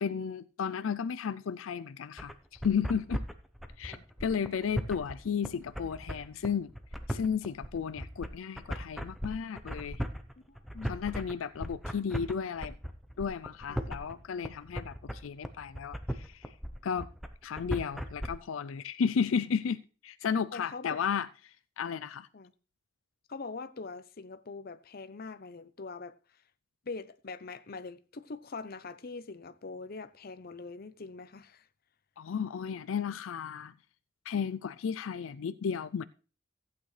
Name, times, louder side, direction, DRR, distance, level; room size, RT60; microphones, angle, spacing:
voice 1, 0.0-3.2 3.8-6.7 7.1-10.0 10.9-12.8 13.2-16.5 16.8-17.1 17.4-22.3 32.2-33.7 34.3-36.0, left 6 dB, 85° left, 0.4 m, -33 dB
sound 1, 2.2-18.3, equal, ahead, 0.7 m, -37 dB
voice 2, 10.5-11.0 13.7-13.9 20.5-21.0 22.3-22.5 23.3-26.1 26.9-31.7, left 4 dB, 50° left, 0.7 m, -43 dB
15.0 x 8.6 x 3.3 m
head